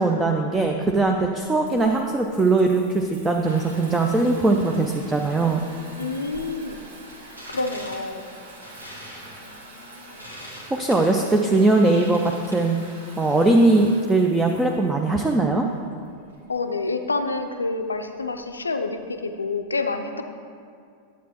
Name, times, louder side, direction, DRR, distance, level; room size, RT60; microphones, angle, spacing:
voice 1, 0.0-5.6 10.7-12.8 13.2-15.7, right 2 dB, 10° right, 2 dB, 0.4 m, -20 dB
Water tap faucet / Bathtub (filling or washing) / Trickle dribble, 0.5-19.4, right 1 dB, 65° right, 1.2 m, -45 dB
voice 2, 6.0-6.8 7.5-8.2 9.4-9.6 10.0-10.2 16.5-20.2, left 3 dB, 75° left, 7 dB, 0.5 m, -28 dB
sound 1, 7.2-12.9, equal, 90° right, 1.6 m, -43 dB
10.0 x 7.3 x 2.9 m, 2.2 s
figure-of-eight pair, 90°, 0 cm